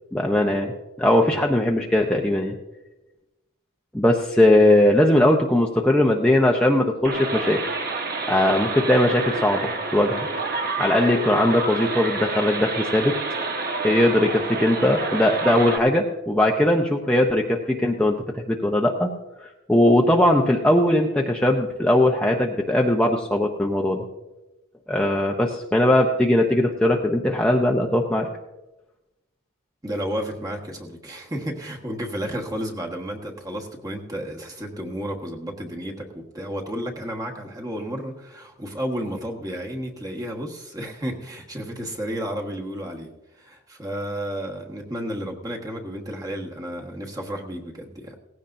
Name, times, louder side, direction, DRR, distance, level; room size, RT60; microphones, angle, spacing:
voice 1, 0.1-0.7 1.0-2.5 3.9-7.6 8.2-10.3 10.8-13.1 13.8-19.1 19.4-24.0 24.9-28.3, left 1 dB, 5° left, -1 dB, 0.7 m, -20 dB
sound 1, 7.0-15.8, right 3 dB, 45° right, 1.3 m, -28 dB
voice 2, 29.8-43.1 43.4-48.2, equal, 15° right, 1 dB, 1.4 m, -32 dB
18.0 x 15.5 x 2.6 m, 1.0 s
head